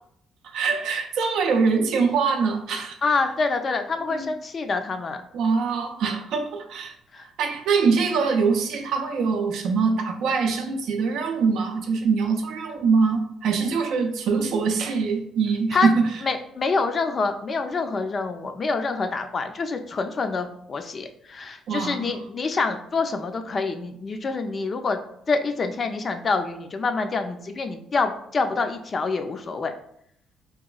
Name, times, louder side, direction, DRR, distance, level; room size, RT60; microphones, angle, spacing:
voice 1, 0.4-3.0 4.1-4.3 5.3-7.0 7.4-16.2 21.7-22.1, right 5 dB, 75° right, 0.4 m, -23 dB
voice 2, 3.0-5.2 7.1-7.2 15.7-15.9 16.2-25.0 25.3-29.7, left 4 dB, 45° left, 0.4 m, -26 dB
2.9 x 2.2 x 2.3 m
supercardioid pair, 60°, 0 cm